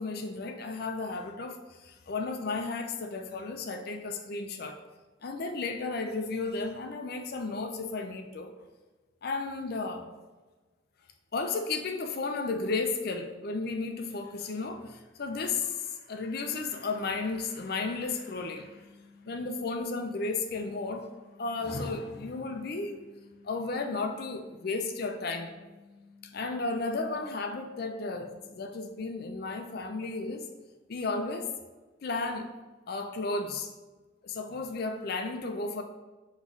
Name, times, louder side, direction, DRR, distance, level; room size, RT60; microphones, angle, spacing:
voice 1, 0.0-4.8 5.2-8.5 9.2-10.1 11.3-18.9 19.2-21.1 21.4-23.0 23.4-25.5 26.3-30.4 30.9-31.5 32.0-32.5 32.9-33.7 34.2-35.8, left 3 dB, 50° left, 5 dB, 0.4 m, -33 dB
sound 1, 17.5-29.0, left 4 dB, 55° right, 1.3 m, -56 dB
3.9 x 3.1 x 3.7 m, 1.2 s
head